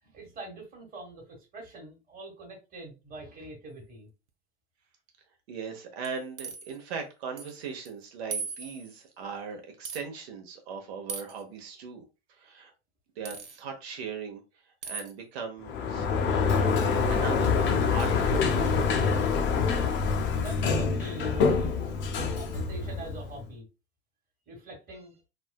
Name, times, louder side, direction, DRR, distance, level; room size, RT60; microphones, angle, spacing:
voice 1, 0.0-4.1 20.4-21.8 22.3-23.6 24.5-25.2, right 1 dB, 25° right, 0 dB, 1.3 m, -44 dB
voice 2, 5.5-12.0 12.4-12.7 13.2-14.4 14.8-16.1 16.5-16.6 17.1-18.6, right 5 dB, 65° right, 4 dB, 0.9 m, -39 dB
sound 1, 6.0-6.8 7.4-7.6 7.8-7.9 8.3-9.0 9.8-10.0 11.1-11.4 13.2-13.6 14.8-15.1, right 5 dB, 85° right, 0.5 m, -38 dB
Sliding door, 15.6-23.4, left 5 dB, 35° left, 0.6 m, -26 dB
3.4 x 2.2 x 2.2 m, 0.28 s
figure-of-eight pair, 85°, 34 cm